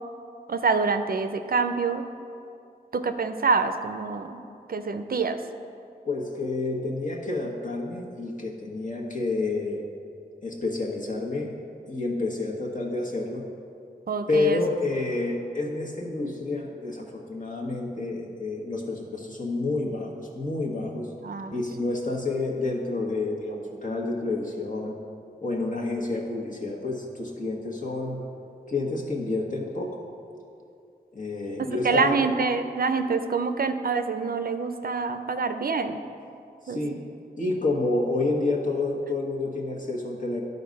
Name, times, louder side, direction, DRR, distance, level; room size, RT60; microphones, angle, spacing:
voice 1, 0.5-2.0 2.9-4.4 4.7-5.4 14.1-14.6 21.2-21.5 31.6-36.0 36.7-37.0, right 4 dB, 65° right, 8 dB, 0.5 m, -26 dB
voice 2, 6.0-9.9 10.4-11.5 11.9-13.4 14.3-21.1 21.5-25.0 25.4-28.2 28.7-30.0 31.1-32.1 36.6-37.0 37.4-40.4, left 3 dB, 50° left, -2 dB, 1.4 m, -29 dB
11.5 x 4.0 x 5.2 m, 2.5 s
wide cardioid pair, 50°, 17 cm